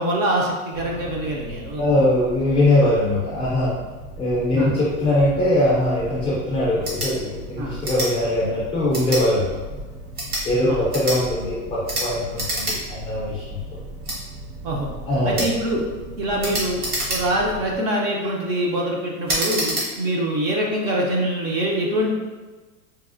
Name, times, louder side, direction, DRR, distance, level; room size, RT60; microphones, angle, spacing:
voice 1, 0.0-1.8 4.6-4.8 7.6-7.8 10.7-10.9 14.6-14.9 15.2-15.8 16.2-16.8 17.1-22.1, right 1 dB, 35° right, -1 dB, 0.5 m, -24 dB
sound 1, 0.7-17.8, right 1 dB, 60° right, 0.8 m, -38 dB
voice 2, 1.8-3.7 4.2-9.6 10.4-13.6 15.1-15.5, left 1 dB, 15° left, -7 dB, 0.4 m, -21 dB
sound 2, 6.8-7.1 7.8-8.1 8.9-9.2 10.0-10.5 10.9-11.2 11.8-12.1 12.3-12.8 13.1-13.2 14.0-14.2 15.3-15.5 16.4-17.5 18.0-18.3 19.3-19.9, right 1 dB, 85° right, 1.4 m, -26 dB
4.0 x 2.1 x 2.4 m, 1.3 s
hypercardioid pair, 130°, 43 cm